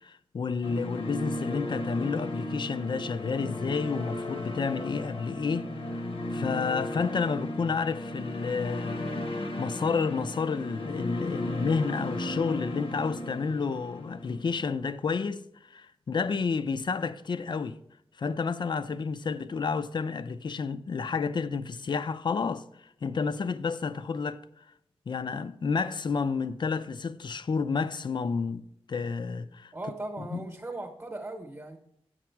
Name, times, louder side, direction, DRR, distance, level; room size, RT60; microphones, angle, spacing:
voice 1, 0.0-6.0 6.3-9.1 9.4-17.8 18.2-24.6 25.1-28.6 28.9-29.7 30.2-30.5, left 5 dB, 50° left, 0.4 m, -30 dB
sound 1, 0.6-14.7, left 1 dB, 65° left, 0.9 m, -35 dB
voice 2, 29.7-31.8, right 2 dB, 25° right, 0.9 m, -38 dB
8.5 x 6.0 x 4.5 m
wide cardioid pair, 130°, 10 cm